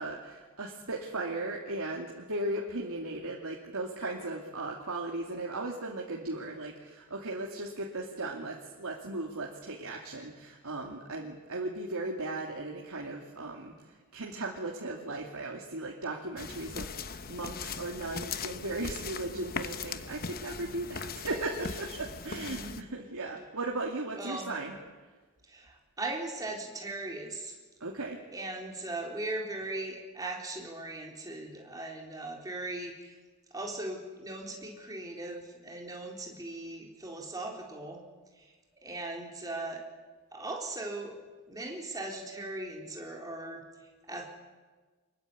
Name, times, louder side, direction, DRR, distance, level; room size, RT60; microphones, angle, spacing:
voice 1, 0.0-24.8 27.8-28.2, right 2 dB, 85° right, -2 dB, 2.7 m, -37 dB
sound 1, 16.4-22.8, left 5 dB, 45° left, 1.0 m, -39 dB
voice 2, 22.3-22.8 24.1-24.5 25.4-27.5 28.3-33.2 33.5-38.0 38.3-38.5 38.8-39.8 40.3-41.2 41.5-44.3, right 2 dB, 15° right, 0 dB, 4.0 m, -39 dB
24.5 x 22.0 x 8.6 m, 1.4 s
head